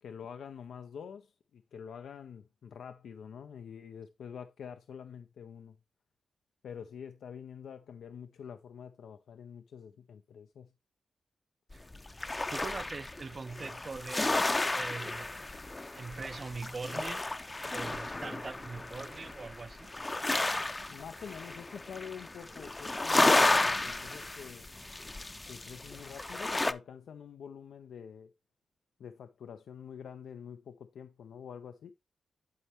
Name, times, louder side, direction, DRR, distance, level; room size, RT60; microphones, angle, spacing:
voice 1, 0.0-5.8 6.6-10.7 20.9-24.7 25.5-28.3 29.0-31.9, left 7 dB, 85° left, 0.4 m, -46 dB
sound 1, 11.7-26.7, left 2 dB, 25° left, 0.5 m, -32 dB
voice 2, 12.5-14.4 14.7-15.3 15.9-17.2 17.7-19.9, right 4 dB, 45° right, 0.5 m, -42 dB
11.5 x 4.2 x 3.0 m
cardioid pair, 75°, 0 cm